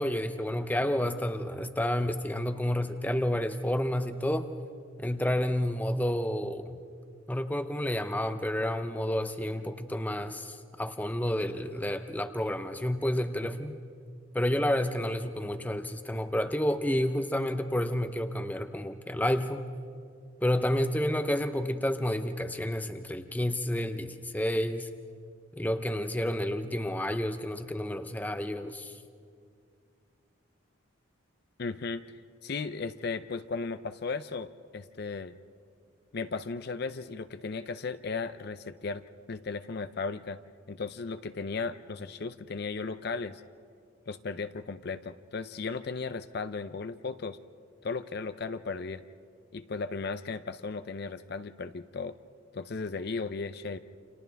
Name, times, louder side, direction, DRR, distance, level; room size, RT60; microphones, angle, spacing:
voice 1, 0.0-4.5 5.0-6.8 7.3-13.7 14.3-19.7 20.4-24.9 25.6-28.9, left 1 dB, 10° left, 9 dB, 0.6 m, -30 dB
voice 2, 31.6-32.0 32.4-35.3 36.1-39.0 39.3-40.4 40.7-43.4 44.1-47.4 47.8-49.0 49.5-52.2 52.5-53.8, left 4 dB, 50° left, 11 dB, 0.5 m, -36 dB
29.5 x 27.5 x 3.4 m, 2.2 s
head